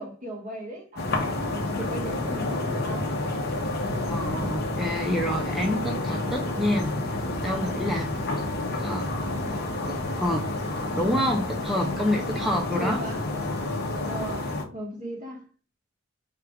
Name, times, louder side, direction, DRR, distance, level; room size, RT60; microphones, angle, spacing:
voice 1, 0.0-3.2 12.3-12.4 12.7-13.3 14.0-15.4, right 1 dB, 40° right, 1.4 m, -37 dB
sound 1, 1.0-14.6, left 2 dB, 55° left, 0.8 m, -29 dB
voice 2, 4.1-8.2 8.8-9.2 10.2-10.5 10.9-13.0, left 1 dB, ahead, 0.5 m, -28 dB
4.5 x 2.5 x 4.8 m
head